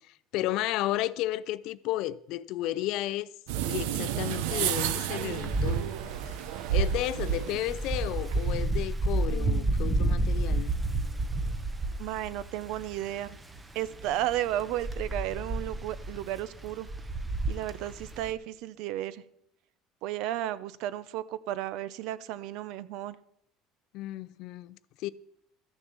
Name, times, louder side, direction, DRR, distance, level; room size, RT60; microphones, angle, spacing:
voice 1, 0.3-3.3 3.6-5.9 6.7-10.7 23.9-25.1, left 15 dB, 55° left, 0.4 m, -33 dB
sound 1, 3.5-8.6, right 9 dB, 85° right, 0.8 m, -31 dB
Wind, 5.2-18.3, right 2 dB, 10° right, 0.8 m, -31 dB
voice 2, 9.3-9.9 12.0-13.4 13.7-16.9 17.5-19.2 20.0-23.2, right 13 dB, 60° right, 0.6 m, -34 dB
13.5 x 7.1 x 7.0 m
cardioid pair, 165°, 0 cm